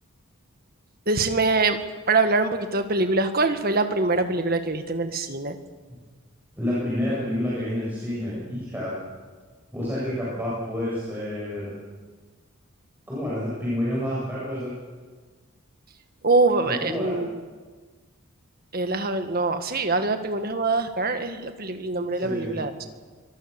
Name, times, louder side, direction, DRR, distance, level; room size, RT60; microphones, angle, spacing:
voice 1, 1.1-1.8 2.1-5.5 16.2-17.4 18.7-22.7, right 3 dB, 40° right, 7 dB, 1.7 m, -24 dB
voice 2, 6.6-9.0 9.7-11.7 13.1-14.8 16.6-17.2 22.1-22.5, left 1 dB, 10° right, -8 dB, 7.4 m, -29 dB
24.5 x 20.5 x 7.0 m, 1.4 s
head